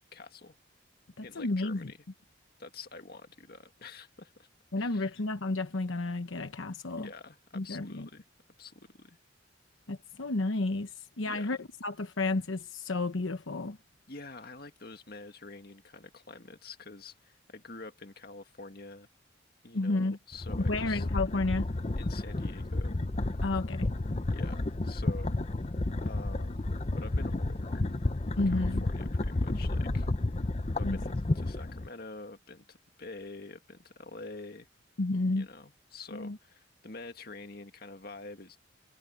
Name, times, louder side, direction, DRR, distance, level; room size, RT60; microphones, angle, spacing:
voice 1, 0.1-0.6 1.2-2.0 2.6-4.5 4.8-5.2 6.9-8.3 8.6-9.2 11.2-11.5 14.1-19.1 19.6-21.1 22.0-23.0 24.3-25.4 26.0-26.7 27.0-27.9 28.5-30.1 30.8-34.7 35.4-38.6, left 3 dB, 50° left, 1.9 m, -47 dB
voice 2, 1.2-1.9 4.7-7.1 7.5-8.1 9.9-13.8 19.7-20.2 20.7-21.7 23.4-23.9 28.4-28.8 30.8-31.0 35.0-35.5 36.1-36.4, left 2 dB, 90° left, 1.0 m, -31 dB
sound 1, 20.3-31.9, left 2 dB, 35° left, 0.7 m, -31 dB
head